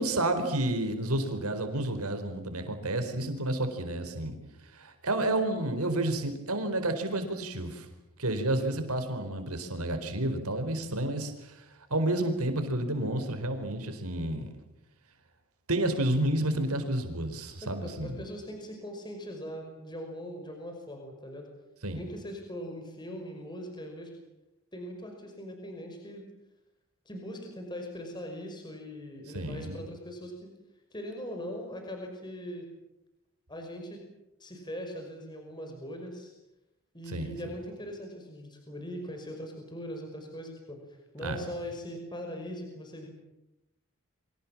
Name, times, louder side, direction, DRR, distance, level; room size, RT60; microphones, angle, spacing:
voice 1, 0.0-4.4 4.7-7.9 8.2-11.6 11.9-14.5 15.7-18.1 21.8-22.0 29.3-29.8 37.1-37.4 41.2-41.4, right 1 dB, 80° right, 7 dB, 4.4 m, -30 dB
voice 2, 17.6-21.5 21.9-24.2 24.7-26.3 27.1-30.5 30.9-32.7 33.5-34.0 34.4-36.3 36.9-43.1, equal, 20° left, 3 dB, 5.5 m, -41 dB
30.0 x 25.0 x 7.4 m, 0.91 s
head